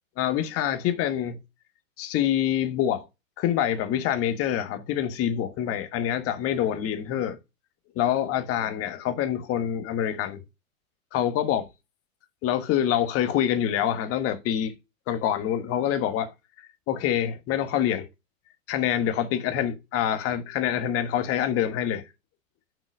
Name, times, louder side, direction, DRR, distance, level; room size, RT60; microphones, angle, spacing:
voice 1, 0.2-1.4 2.0-3.0 3.4-7.4 7.9-10.4 11.1-11.6 12.4-14.7 15.1-16.3 16.9-18.1 18.7-22.0, left 10 dB, 35° left, 1.4 m, -26 dB
5.8 x 5.4 x 6.1 m
hypercardioid pair, 115°, 42 cm